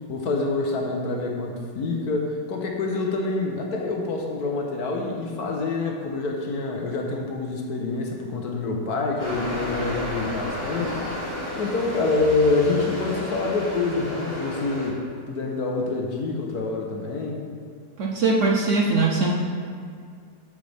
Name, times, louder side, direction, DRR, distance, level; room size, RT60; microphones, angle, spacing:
voice 1, 0.1-11.0 11.6-17.4, left 3 dB, 65° left, 1 dB, 1.4 m, -26 dB
sound 1, 9.2-14.9, left 1 dB, 35° left, 2.5 m, -32 dB
voice 2, 18.0-19.3, right 3 dB, 55° right, -2 dB, 0.9 m, -21 dB
13.0 x 5.3 x 3.4 m, 2.1 s
omnidirectional pair, 1.9 m